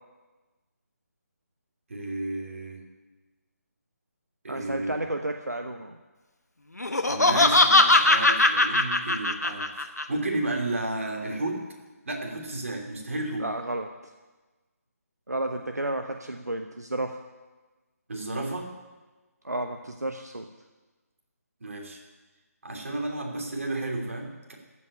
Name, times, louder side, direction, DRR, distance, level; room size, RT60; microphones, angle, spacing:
voice 1, 1.9-2.8 4.4-4.9 7.1-9.7 10.1-11.6 12.0-13.5 18.1-18.7 21.6-22.0 22.6-24.5, right 2 dB, 55° right, 1 dB, 2.9 m, -32 dB
voice 2, 4.5-6.0 13.4-13.9 15.3-17.2 19.4-20.5, right 1 dB, 90° right, 5 dB, 0.9 m, -32 dB
Laughter, 6.8-10.0, left 2 dB, 85° left, 1.2 m, -20 dB
14.5 x 5.6 x 9.8 m, 1.2 s
figure-of-eight pair, 150°, 9 cm